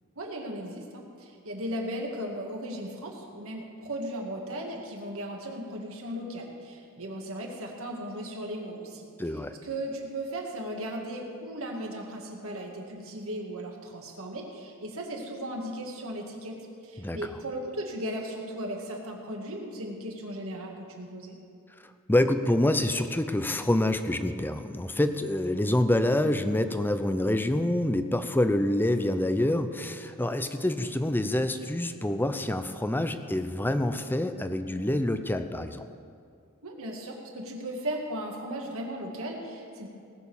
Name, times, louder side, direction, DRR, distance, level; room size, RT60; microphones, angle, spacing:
voice 1, 0.2-9.1 9.6-16.6 16.8-21.4 36.6-39.9, right 1 dB, 65° right, 0 dB, 2.1 m, -36 dB
voice 2, 9.2-9.6 17.0-17.2 22.1-35.8, left 1 dB, 10° left, 9 dB, 0.6 m, -26 dB
18.5 x 6.7 x 7.2 m, 2.3 s
head